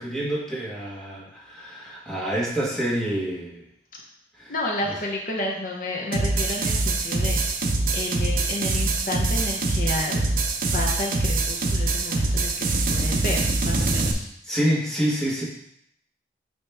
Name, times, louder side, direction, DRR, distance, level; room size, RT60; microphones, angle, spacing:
voice 1, 0.0-3.6 4.3-4.5 14.4-15.4, right 1 dB, 5° left, -6 dB, 1.5 m, -27 dB
voice 2, 4.5-7.7 7.9-10.4 10.7-14.3, left 1 dB, 50° left, -1 dB, 0.8 m, -31 dB
sound 1, 6.1-14.1, right 2 dB, 50° right, 0.6 m, -24 dB
8.8 x 3.0 x 3.5 m, 0.74 s
head